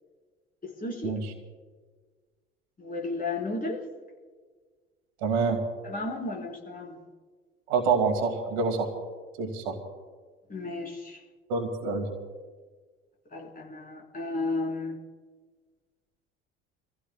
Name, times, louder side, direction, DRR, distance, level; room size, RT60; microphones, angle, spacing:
voice 1, 0.6-1.2 2.8-3.9 5.8-7.0 10.5-11.2 13.3-15.0, left 2 dB, 25° left, -1 dB, 4.7 m, -33 dB
voice 2, 5.2-5.6 7.7-8.9 9.4-9.8 11.5-12.1, right 4 dB, 65° right, 5 dB, 2.5 m, -26 dB
29.0 x 15.5 x 2.4 m, 1.4 s
figure-of-eight pair, 60°, 34 cm